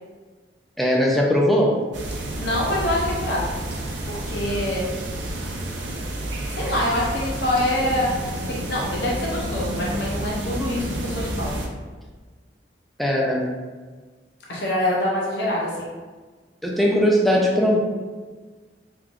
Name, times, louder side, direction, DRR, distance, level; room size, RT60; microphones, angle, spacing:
voice 1, 0.8-1.8 13.0-13.5 16.6-17.8, equal, ahead, -2 dB, 0.4 m, -19 dB
sound 1, 1.9-11.7, right 1 dB, 85° right, 0.6 m, -30 dB
voice 2, 2.4-3.5 4.1-5.0 6.5-8.1 8.6-11.6 14.5-15.9, left 1 dB, 70° left, -4 dB, 0.6 m, -25 dB
3.6 x 3.3 x 2.4 m, 1.4 s
head